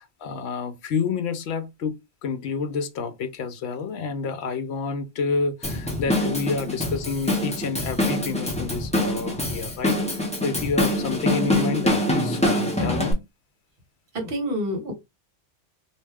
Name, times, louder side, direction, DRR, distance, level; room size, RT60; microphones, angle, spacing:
voice 1, 0.0-1.9 2.2-13.2, left 4 dB, 65° left, 0.8 m, -29 dB
Drum kit / Drum, 5.6-13.1, left 1 dB, 10° left, 0.4 m, -25 dB
voice 2, 6.0-6.4 14.1-14.9, equal, 50° right, 1.3 m, -29 dB
2.7 x 2.2 x 3.3 m
omnidirectional pair, 1.3 m